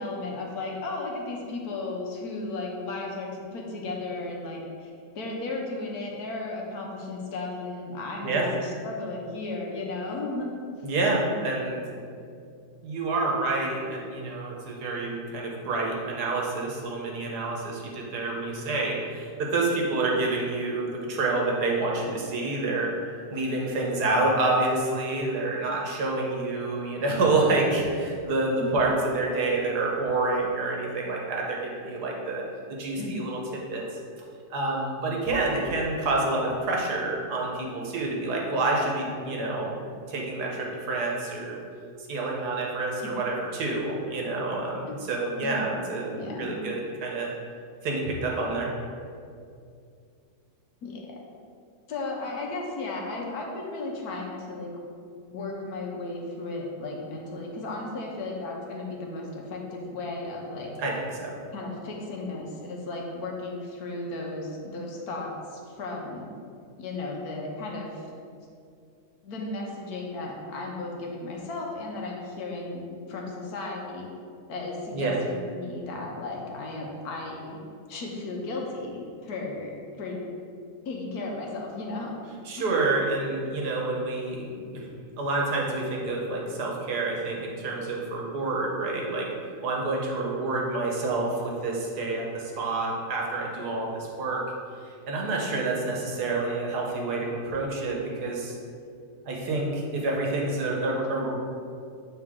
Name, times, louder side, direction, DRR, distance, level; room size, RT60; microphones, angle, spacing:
voice 1, 0.0-10.8 28.6-28.7 33.0-33.5 43.0-43.1 44.9-45.0 45.4-45.8 46.1-46.6 50.8-51.1 51.9-54.7 55.3-60.7 61.5-66.3 66.8-68.1 69.2-74.1 74.5-77.6 77.9-79.7 80.0-80.3 80.8-82.2 82.6-82.7, left 2 dB, 75° left, -1 dB, 1.4 m, -35 dB
voice 2, 10.8-11.8 12.8-22.9 23.3-32.4 32.7-33.8 34.5-41.6 42.1-46.1 46.4-47.3 47.8-48.7 60.8-61.3 74.9-75.2 82.5-84.9 85.2-89.3 89.6-94.4 94.8-98.6 99.2-101.3, right 2 dB, 90° right, -1 dB, 1.6 m, -28 dB
7.7 x 3.9 x 3.7 m, 2.4 s
omnidirectional pair, 1.7 m